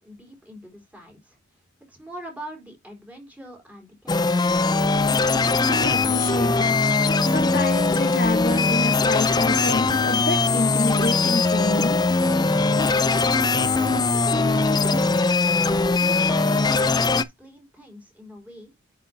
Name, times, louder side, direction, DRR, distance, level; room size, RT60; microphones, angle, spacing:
voice 1, 0.0-1.6 1.9-4.5 14.1-15.2 15.9-18.7, equal, 5° right, 3.9 m, -43 dB
sound 1, 4.1-17.2, left 3 dB, 20° left, 0.5 m, -21 dB
voice 2, 5.6-6.8 7.2-12.0, left 2 dB, 45° left, 1.0 m, -27 dB
9.8 x 6.2 x 2.7 m
head